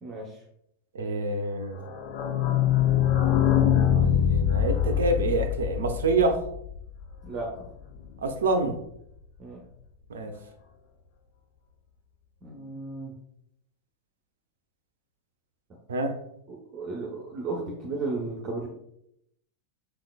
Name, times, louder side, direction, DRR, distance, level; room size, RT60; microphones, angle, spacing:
voice 1, 0.9-1.8 3.9-6.4 8.2-8.8 10.1-10.3 15.9-16.2, right 2 dB, 65° right, 7 dB, 0.6 m, -27 dB
sound 1, 1.8-7.3 7.6-7.7 7.9-8.0 8.3-8.4, left 9 dB, 50° left, 0.5 m, -24 dB
voice 2, 12.4-13.1 16.5-18.7, right 3 dB, 30° right, -1 dB, 0.8 m, -34 dB
6.0 x 3.7 x 2.3 m, 0.76 s
figure-of-eight pair, 90°, 0 cm